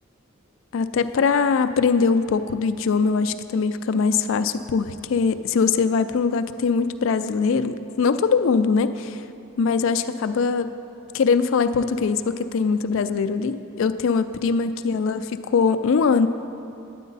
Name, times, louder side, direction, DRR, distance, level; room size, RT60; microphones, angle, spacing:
voice 1, 0.7-9.2 9.6-10.7 11.1-16.3, left 5 dB, 65° left, 11 dB, 0.3 m, -22 dB
9.3 x 9.1 x 4.0 m, 2.7 s
head